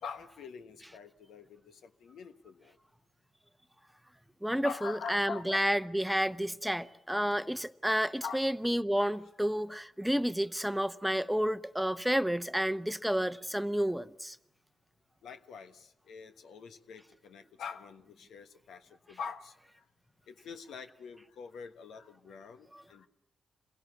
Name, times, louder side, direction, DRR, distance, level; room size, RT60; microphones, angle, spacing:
voice 1, 0.0-2.8 4.6-5.6 8.2-8.4 15.2-19.5 20.3-23.1, left 6 dB, 80° left, 1.3 m, -44 dB
voice 2, 4.4-14.4 22.7-22.8, equal, 5° right, 0.9 m, -30 dB
27.0 x 16.5 x 8.4 m
supercardioid pair, 40°, 0 cm